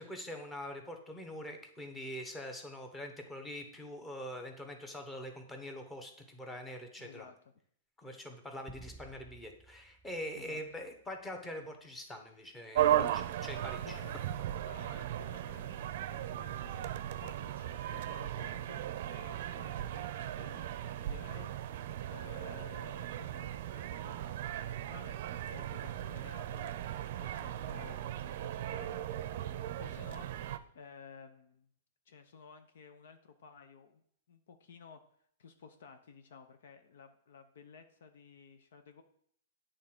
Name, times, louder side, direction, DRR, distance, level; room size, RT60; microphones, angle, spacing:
voice 1, 0.0-7.3 8.0-14.0, left 1 dB, 10° left, 4 dB, 1.3 m, -44 dB
voice 2, 7.0-7.3 8.0-8.2 10.3-10.6 13.8-14.3 14.6-16.8 17.2-21.5 22.1-26.7 27.1-28.9 29.8-31.7 32.1-34.0 34.3-35.0 35.4-39.0, left 6 dB, 70° left, 8 dB, 0.8 m, -54 dB
sound 1, 8.7-11.3, right 2 dB, 5° right, 0.4 m, -56 dB
sound 2, 12.7-30.6, right 11 dB, 55° right, 0.5 m, -37 dB
8.5 x 3.9 x 6.1 m, 0.64 s
hypercardioid pair, 125°, 0 cm